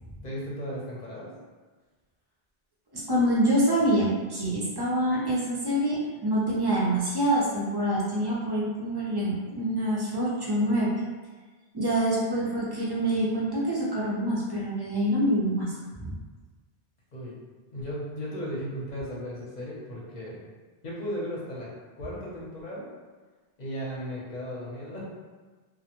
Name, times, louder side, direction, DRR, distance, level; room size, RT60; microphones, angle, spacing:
voice 1, 0.2-1.3 12.1-12.3 17.1-17.3 17.7-20.4 20.8-21.7 22.0-22.9 23.6-25.0, equal, 50° left, -5 dB, 0.7 m, -36 dB
voice 2, 2.9-11.0 11.7-15.7 16.0-16.1, right 1 dB, 40° right, -6 dB, 0.4 m, -26 dB
2.1 x 2.1 x 2.8 m, 1.4 s
omnidirectional pair, 1.0 m